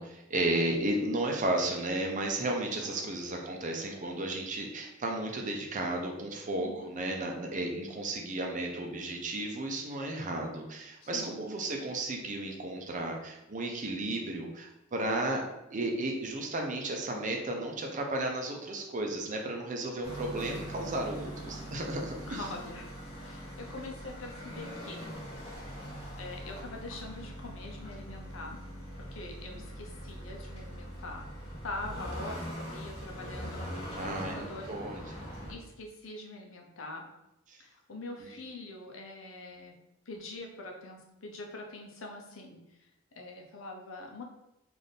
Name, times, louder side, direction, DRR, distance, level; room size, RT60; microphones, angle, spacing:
voice 1, 0.0-22.4 29.5-29.7 33.9-35.2 37.5-37.6 38.2-38.3, right 1 dB, 40° right, 1 dB, 0.6 m, -34 dB
voice 2, 2.8-3.1 6.6-7.2 11.0-11.5 22.3-22.9 23.2-25.1 26.2-28.6 29.1-31.3 31.6-34.0 34.3-35.1 35.4-37.0 37.6-39.7 40.1-42.6 43.2-44.2, left 2 dB, 75° left, 1 dB, 0.7 m, -44 dB
sound 1, 20.0-35.5, equal, 30° left, 1.3 m, -42 dB
3.4 x 2.5 x 4.1 m, 0.89 s
head